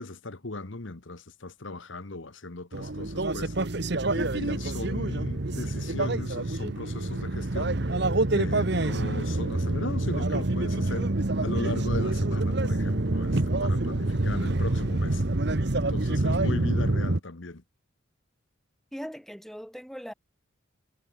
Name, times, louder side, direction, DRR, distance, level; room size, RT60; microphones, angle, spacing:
voice 1, 0.0-3.8 4.1-7.8 8.3-11.1 11.4-15.2 15.7-17.6, left 2 dB, 65° left, 1.4 m, -37 dB
sound 1, 2.7-17.2, right 2 dB, 55° right, 1.2 m, -27 dB
voice 2, 18.9-20.1, equal, ahead, 2.4 m, -39 dB
head